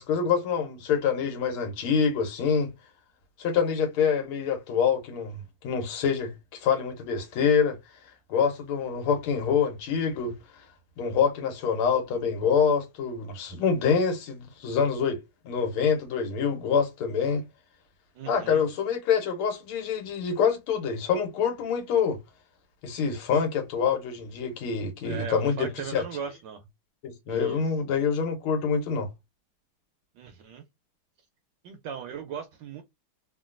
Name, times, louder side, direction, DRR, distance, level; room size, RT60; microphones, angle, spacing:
voice 1, 0.0-2.7 3.4-7.8 8.3-10.4 11.0-17.4 18.3-22.2 22.8-26.0 27.0-29.1, left 6 dB, 80° left, 1.8 m, -26 dB
voice 2, 18.2-18.6 25.0-26.6 27.3-27.6 30.2-30.6 31.6-32.8, right 6 dB, 75° right, 1.0 m, -37 dB
3.7 x 2.2 x 2.4 m
omnidirectional pair, 2.3 m